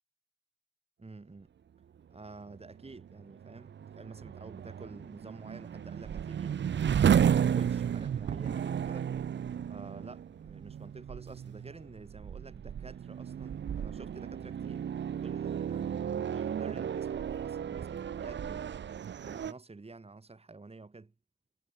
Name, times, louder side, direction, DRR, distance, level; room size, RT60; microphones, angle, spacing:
voice 1, 1.0-1.5 2.1-6.6 7.0-9.1 9.7-14.9 15.2-18.8 19.2-21.1, right 3 dB, 20° right, 7.2 m, -49 dB
sound 1, 2.5-19.5, right 8 dB, 35° right, 1.4 m, -33 dB
figure-of-eight pair, 55°, 30 cm